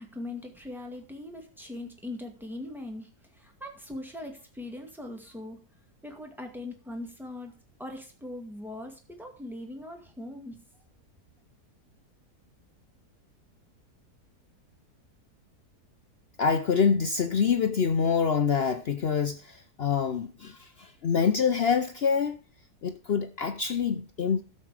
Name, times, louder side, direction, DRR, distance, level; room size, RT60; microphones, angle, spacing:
voice 1, 0.0-5.6 6.0-7.5 7.8-10.8, left 1 dB, ahead, 2.0 m, -40 dB
voice 2, 16.4-22.4 22.8-24.4, left 6 dB, 60° left, 0.6 m, -26 dB
12.5 x 6.9 x 4.8 m
omnidirectional pair, 1.7 m